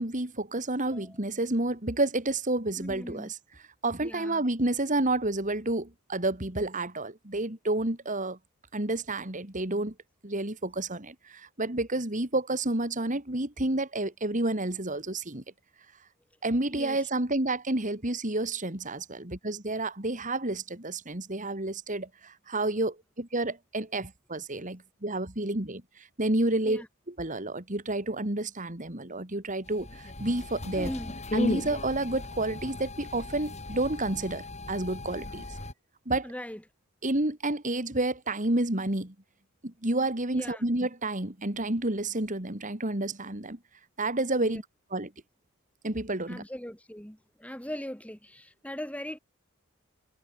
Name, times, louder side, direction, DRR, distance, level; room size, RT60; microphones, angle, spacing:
voice 1, 0.0-3.4 3.8-8.4 8.7-9.9 10.2-15.4 16.4-30.9 31.3-35.5 36.1-36.2 37.0-39.1 39.6-43.6 44.0-44.6 44.9-45.1 45.8-46.4, right 2 dB, 35° right, 2.6 m, -30 dB
voice 2, 0.8-1.2 2.8-3.3 4.0-4.4 16.7-17.1 26.6-26.9 30.7-31.1 36.1-36.6 40.3-40.7 44.4-44.6 46.3-49.2, equal, 5° left, 2.8 m, -40 dB
sound 1, 29.7-35.7, left 1 dB, 30° left, 4.3 m, -36 dB
head